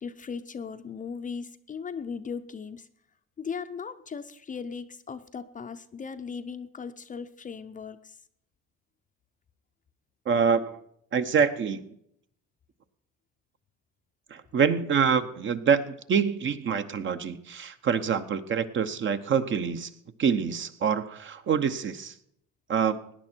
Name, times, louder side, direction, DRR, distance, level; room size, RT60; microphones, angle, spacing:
voice 1, 0.0-2.9 3.4-8.2, left 6 dB, 25° left, 9 dB, 0.6 m, -38 dB
voice 2, 10.3-10.8 11.1-11.8 14.3-19.9 20.2-22.1 22.7-23.0, right 6 dB, 40° right, 10 dB, 0.9 m, -26 dB
17.5 x 9.9 x 4.5 m, 0.71 s
cardioid pair, 115°, 30 cm